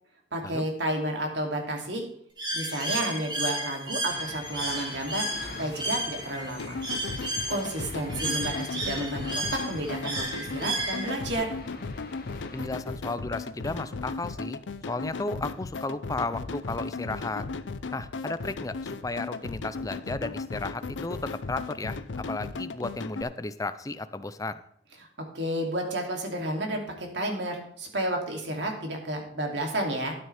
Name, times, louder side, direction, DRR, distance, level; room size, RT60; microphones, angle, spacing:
voice 1, 0.3-2.1 2.5-5.3 5.6-6.8 7.5-9.3 9.5-11.5 25.2-30.1, right 1 dB, 70° right, 2 dB, 2.8 m, -31 dB
Bird, 2.4-11.3, right 1 dB, 25° right, 3.4 m, -33 dB
sound 1, 4.1-12.7, left 2 dB, 55° left, 1.2 m, -45 dB
sound 2, 6.6-23.2, left 3 dB, 85° left, 0.6 m, -36 dB
voice 2, 12.5-14.6 14.9-17.5 17.9-24.6, left 2 dB, 20° left, 12 dB, 0.5 m, -34 dB
13.0 x 9.2 x 3.5 m, 0.68 s
head